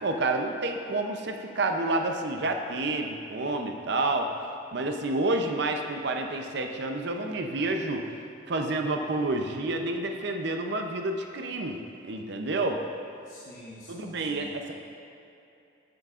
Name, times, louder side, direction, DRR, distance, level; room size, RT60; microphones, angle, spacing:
voice 1, 0.0-4.3 4.7-8.1 8.5-12.8 13.9-14.7, right 2 dB, 60° right, 4 dB, 0.6 m, -29 dB
voice 2, 13.2-14.7, equal, 50° left, -7 dB, 1.0 m, -47 dB
12.0 x 7.7 x 2.5 m, 2.8 s
head